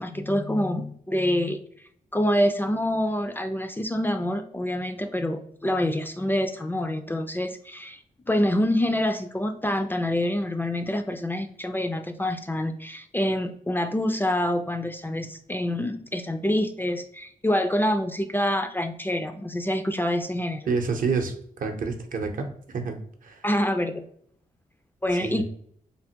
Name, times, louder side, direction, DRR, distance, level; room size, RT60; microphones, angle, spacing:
voice 1, 0.0-1.6 2.1-8.0 8.3-20.7 23.4-24.1 25.0-25.4, left 1 dB, 15° left, 6 dB, 0.3 m, -26 dB
voice 2, 20.7-23.0 23.2-23.4 25.2-25.4, right 4 dB, 65° right, 4 dB, 0.6 m, -28 dB
3.3 x 2.1 x 2.7 m, 0.65 s
cardioid pair, 70°, 15 cm